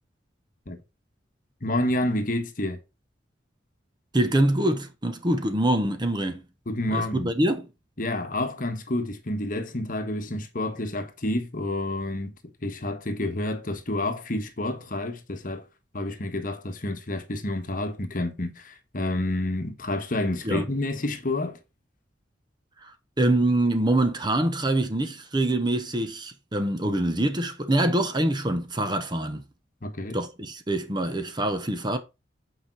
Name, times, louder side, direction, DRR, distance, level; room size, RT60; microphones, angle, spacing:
voice 1, 1.6-2.8 6.7-7.3 8.0-15.7 15.9-21.6 29.8-30.2, left 1 dB, 45° left, 1.3 m, -29 dB
voice 2, 4.1-6.4 6.9-7.7 20.4-20.7 22.8-29.4 30.1-32.0, right 1 dB, 25° right, 1.0 m, -25 dB
8.6 x 5.1 x 4.6 m
head